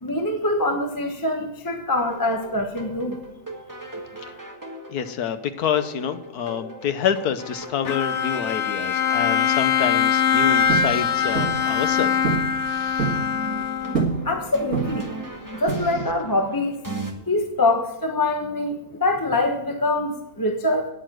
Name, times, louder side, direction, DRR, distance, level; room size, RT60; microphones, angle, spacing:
voice 1, 0.0-3.2 14.2-15.1 15.5-16.8 17.3-20.9, left 2 dB, 15° left, 4 dB, 0.9 m, -24 dB
sound 1, 2.1-17.1, right 2 dB, 10° right, 1.7 m, -39 dB
voice 2, 4.9-12.1 12.7-13.1, left 8 dB, 85° left, 10 dB, 1.4 m, -27 dB
Bowed string instrument, 7.9-14.3, left 7 dB, 65° left, 0.8 m, -22 dB
sound 2, 10.7-10.9 11.4-11.6 12.2-12.5 12.8-13.2 13.9-14.2 14.7-15.1 15.7-16.2, right 5 dB, 55° right, 2.2 m, -25 dB
10.0 x 9.0 x 6.2 m, 0.89 s
omnidirectional pair, 1.6 m